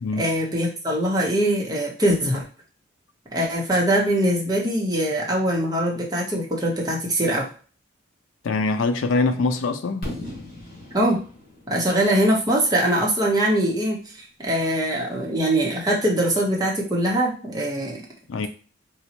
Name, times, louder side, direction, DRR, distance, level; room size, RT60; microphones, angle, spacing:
voice 1, 0.2-2.4 3.3-7.5 10.9-11.2 11.7-18.0, right 1 dB, 20° right, 0.9 m, -22 dB
voice 2, 8.4-10.1 18.3-18.5, left 3 dB, 75° left, 0.4 m, -23 dB
Fireworks, 10.0-13.9, left 1 dB, 50° left, 1.4 m, -38 dB
4.0 x 2.2 x 2.9 m
head